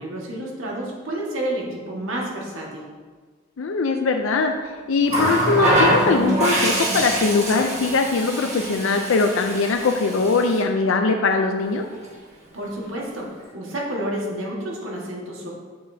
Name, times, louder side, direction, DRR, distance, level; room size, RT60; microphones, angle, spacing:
voice 1, 0.0-2.8 12.5-15.5, right 1 dB, 90° right, -3 dB, 1.6 m, -30 dB
voice 2, 3.6-11.8, left 4 dB, 80° left, 4 dB, 0.5 m, -21 dB
Water tap faucet, 5.1-10.6 11.8-12.0, right 1 dB, 35° right, 1.8 m, -24 dB
7.7 x 6.9 x 2.7 m, 1.5 s
head